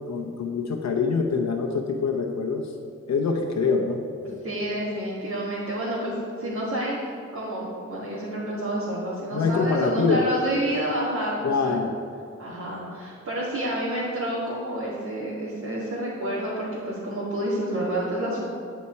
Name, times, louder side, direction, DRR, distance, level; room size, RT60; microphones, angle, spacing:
voice 1, 0.0-2.7 3.1-4.4 9.3-10.3 11.4-11.9, left 4 dB, 65° left, 2 dB, 0.9 m, -25 dB
voice 2, 4.4-7.0 7.3-11.8 12.4-18.4, right 1 dB, 75° right, -9 dB, 2.4 m, -29 dB
9.1 x 8.6 x 4.6 m, 2.6 s
cardioid pair, 75°, 29 cm